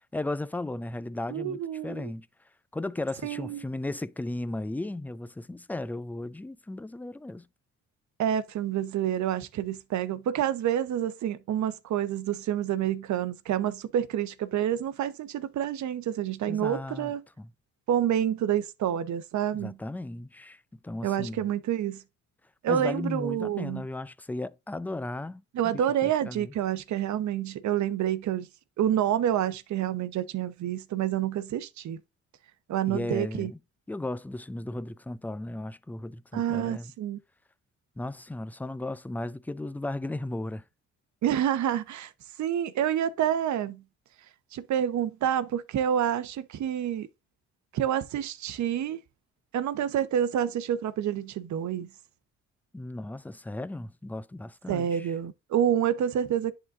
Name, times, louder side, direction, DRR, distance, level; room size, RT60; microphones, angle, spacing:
voice 1, 0.1-2.3 2.7-7.5 16.5-17.1 17.4-17.5 19.5-21.4 22.7-26.5 32.9-33.6 33.9-36.9 38.0-40.6 52.7-55.1, left 2 dB, 5° left, 0.4 m, -35 dB
voice 2, 1.3-2.1 3.2-3.6 8.2-17.2 17.9-19.7 21.0-22.0 22.6-23.8 25.5-28.5 28.8-32.0 32.7-33.5 36.3-37.2 41.2-42.1 42.4-43.8 44.5-47.1 47.7-49.0 49.5-51.9 54.7-56.5, right 10 dB, 70° right, 0.9 m, -28 dB
10.5 x 3.9 x 2.5 m
cardioid pair, 90°, 30 cm